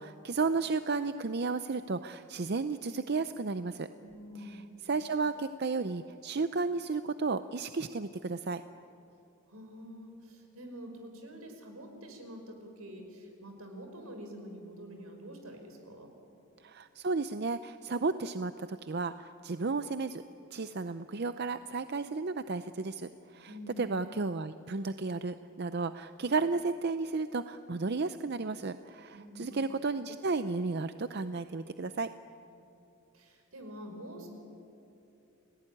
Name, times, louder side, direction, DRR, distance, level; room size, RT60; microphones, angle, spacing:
voice 1, 0.0-3.9 4.8-8.6 16.6-20.2 20.5-23.5 23.8-32.1, right 4 dB, 50° right, 11 dB, 0.6 m, -33 dB
voice 2, 4.0-4.7 9.5-16.1 23.5-23.8 29.1-29.5 32.5-32.6 33.1-34.3, equal, 75° right, 4 dB, 5.3 m, -46 dB
30.0 x 19.0 x 10.0 m, 2.7 s
head